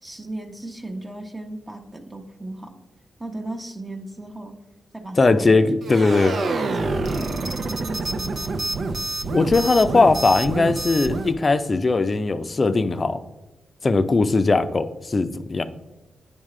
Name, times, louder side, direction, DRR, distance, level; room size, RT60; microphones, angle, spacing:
voice 1, 0.0-2.8 3.2-4.6 4.9-5.6 6.4-8.5, right 1 dB, 25° right, 3 dB, 0.9 m, -36 dB
voice 2, 5.2-6.4 9.3-13.2 13.8-15.7, left 3 dB, 45° left, 11 dB, 0.5 m, -19 dB
sound 1, 5.8-11.3, right 3 dB, 65° right, 0.7 m, -27 dB
9.6 x 3.6 x 3.2 m, 1.1 s
supercardioid pair, 45°, 0 cm